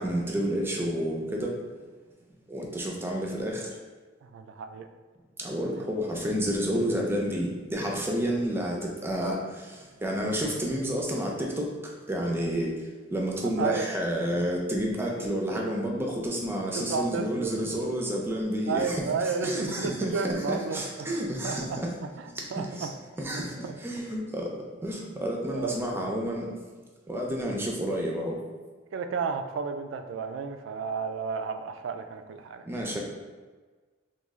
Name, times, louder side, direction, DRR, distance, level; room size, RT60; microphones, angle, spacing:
voice 1, 0.0-1.5 2.5-3.7 5.4-9.4 10.0-11.7 12.1-12.7 13.1-21.9 22.6-22.9 23.2-24.5 24.8-26.5 27.1-28.4 32.7-33.0, equal, 10° right, -1 dB, 0.4 m, -30 dB
voice 2, 4.2-4.9 13.6-13.9 16.8-17.8 18.7-21.8 22.2-22.9 23.3-23.8 25.5-25.8 28.9-32.9, right 5 dB, 80° right, 7 dB, 0.3 m, -32 dB
3.1 x 2.3 x 3.5 m, 1.4 s
head